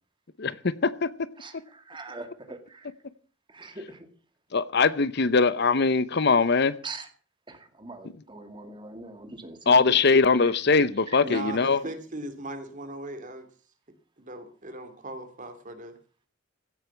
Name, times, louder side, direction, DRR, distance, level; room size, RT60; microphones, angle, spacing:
voice 1, 0.4-1.3 4.5-6.7 9.7-11.9, left 4 dB, 60° left, 0.8 m, -22 dB
voice 2, 1.4-2.9 3.5-4.1 6.8-7.1 7.5-9.7, right 3 dB, 25° right, 2.2 m, -42 dB
voice 3, 11.2-13.5 14.2-15.9, right 2 dB, 40° right, 2.6 m, -38 dB
16.5 x 8.0 x 7.2 m
head